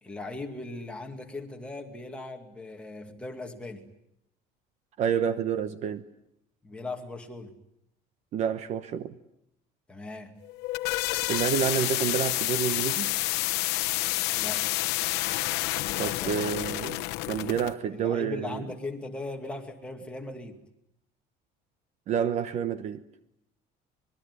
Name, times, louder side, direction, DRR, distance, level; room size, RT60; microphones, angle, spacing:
voice 1, 0.0-3.9 6.6-7.6 9.9-10.4 14.3-14.7 16.2-16.5 17.9-20.6, left 2 dB, 5° left, 2.4 m, -38 dB
voice 2, 5.0-6.0 8.3-9.1 11.2-13.1 16.0-17.0 17.3-18.6 22.1-23.0, right 8 dB, 40° right, 1.1 m, -29 dB
sound 1, 10.4-17.7, left 20 dB, 70° left, 1.0 m, -29 dB
25.5 x 22.5 x 9.8 m
cardioid pair, 180°, 18 cm